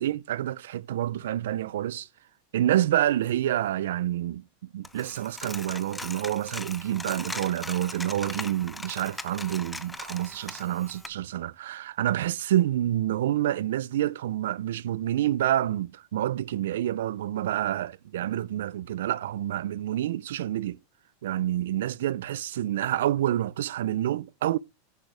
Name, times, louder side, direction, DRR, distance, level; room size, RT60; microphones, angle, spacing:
voice 1, 0.0-2.1 2.5-20.8 21.2-24.6, right 12 dB, 75° right, 0.4 m, -28 dB
Coin (dropping), 4.8-11.1, left 2 dB, 5° left, 0.5 m, -39 dB
11.0 x 7.9 x 3.4 m
supercardioid pair, 180°, 0 cm